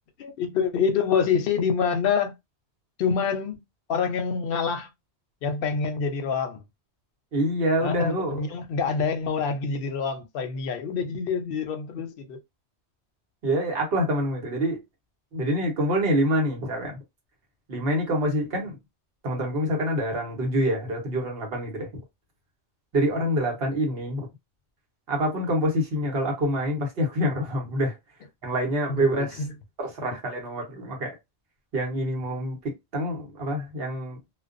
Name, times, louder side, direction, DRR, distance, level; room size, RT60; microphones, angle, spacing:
voice 1, 0.2-2.3 3.0-3.6 3.9-4.9 5.4-6.6 7.8-12.4 29.0-29.5, left 6 dB, 65° left, 0.7 m, -26 dB
voice 2, 7.3-8.4 13.4-14.8 15.3-17.0 17.7-18.8 19.2-22.0 22.9-24.3 25.1-28.0 28.4-29.4 29.8-31.2 31.7-34.2, equal, 60° right, 1.2 m, -26 dB
2.4 x 2.2 x 2.4 m
omnidirectional pair, 1.1 m